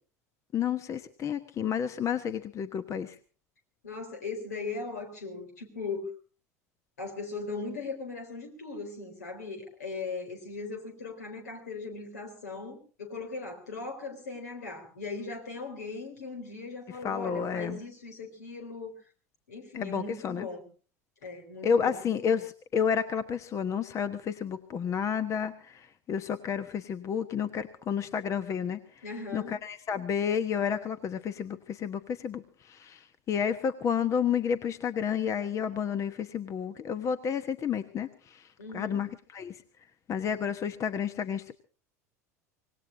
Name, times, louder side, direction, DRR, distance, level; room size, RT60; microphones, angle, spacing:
voice 1, 0.5-3.2 17.0-17.8 19.7-20.5 21.6-29.0 29.3-38.5 38.7-39.6 40.1-41.5, left 7 dB, 35° left, 11 dB, 1.1 m, -31 dB
voice 2, 3.8-6.1 7.0-18.9 19.5-20.7 21.2-22.0 29.0-29.6 38.6-39.0, left 4 dB, 80° left, 5 dB, 4.0 m, -39 dB
25.0 x 19.0 x 2.7 m, 0.36 s
figure-of-eight pair, 75°, 9 cm